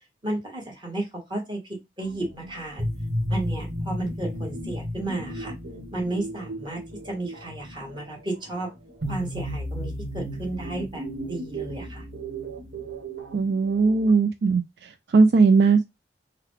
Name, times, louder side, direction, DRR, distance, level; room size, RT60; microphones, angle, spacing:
voice 1, 0.2-2.9 3.3-5.5 5.9-8.7 9.1-12.0, right 2 dB, 25° right, 1.5 m, -33 dB
sound 1, 2.0-14.1, equal, 85° right, 1.1 m, -34 dB
voice 2, 13.3-14.6 15.1-15.9, right 4 dB, 65° right, 0.4 m, -18 dB
3.8 x 2.2 x 3.1 m
head